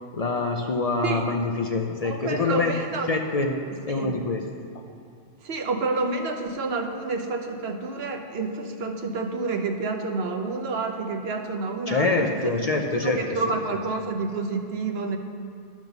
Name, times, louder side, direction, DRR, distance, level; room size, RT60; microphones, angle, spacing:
voice 1, 0.1-2.7 3.1-3.5 3.9-4.4 11.9-13.2, left 3 dB, 45° left, 3 dB, 0.6 m, -25 dB
voice 2, 2.0-3.1 3.9-4.1 5.4-15.2, right 3 dB, 70° right, 4 dB, 1.1 m, -29 dB
10.5 x 6.0 x 6.8 m, 2.4 s
omnidirectional pair, 1.1 m